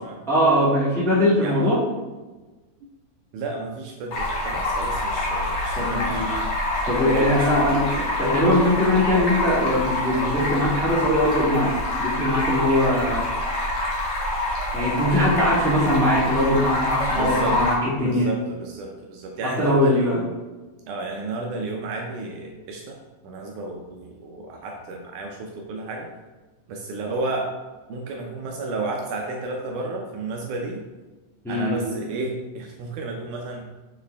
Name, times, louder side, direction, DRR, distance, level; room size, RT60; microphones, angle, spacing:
voice 1, 0.3-1.8 5.7-6.4 6.8-13.2 14.7-18.3 19.6-20.2 31.4-31.8, left 1 dB, ahead, -8 dB, 0.6 m, -21 dB
voice 2, 1.4-1.7 3.3-6.2 7.4-7.7 17.1-17.6 18.0-20.3 20.9-23.0 23.2-26.1 26.7-27.5 27.9-30.8 31.5-33.7, right 3 dB, 75° right, 1 dB, 1.9 m, -32 dB
Stream, 4.1-17.7, left 1 dB, 75° left, 0.9 m, -26 dB
7.2 x 4.5 x 3.4 m, 1.2 s
omnidirectional pair, 4.1 m